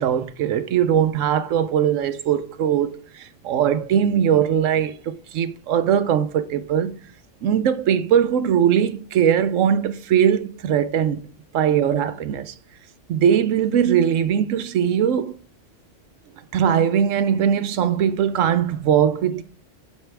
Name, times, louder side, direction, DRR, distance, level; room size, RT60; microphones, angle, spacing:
voice 1, 0.0-6.9 7.4-11.2 11.5-12.5 13.1-15.4 16.5-19.4, right 9 dB, 90° right, 1.1 m, -20 dB
11.5 x 4.8 x 3.3 m
omnidirectional pair, 1.3 m